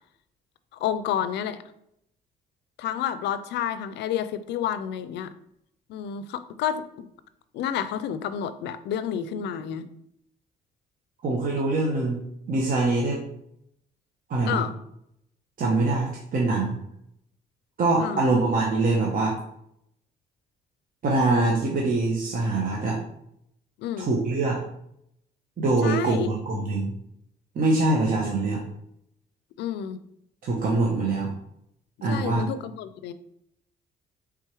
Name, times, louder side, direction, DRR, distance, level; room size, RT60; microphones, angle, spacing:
voice 1, 0.8-1.6 2.8-5.3 5.9-7.1 7.5-9.9 14.4-14.7 18.0-18.3 23.8-24.1 25.8-26.3 29.6-30.0 32.1-33.1, left 9 dB, 80° left, 13 dB, 0.4 m, -30 dB
voice 2, 11.2-13.2 14.3-14.6 15.6-16.8 17.8-19.4 21.0-23.0 24.0-24.6 25.6-26.9 27.5-28.6 30.4-31.3 32.0-32.4, right 2 dB, 55° right, -2 dB, 0.9 m, -24 dB
4.6 x 3.5 x 3.0 m, 0.75 s
cardioid pair, 90°, 18 cm